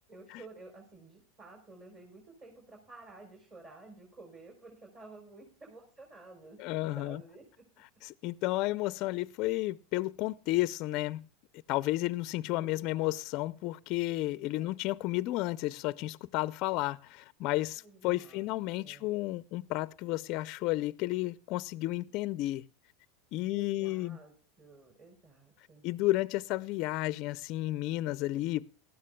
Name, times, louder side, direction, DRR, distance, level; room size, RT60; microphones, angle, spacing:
voice 1, 0.0-7.6 12.6-13.2 14.6-14.7 17.8-18.5 18.8-19.1 23.5-25.9, right 3 dB, 30° right, 4.3 m, -53 dB
voice 2, 6.6-7.2 8.0-11.2 11.7-22.7 23.3-24.2 25.8-28.7, left 17 dB, 55° left, 0.4 m, -32 dB
18.5 x 13.0 x 2.2 m
supercardioid pair, 120°, 0 cm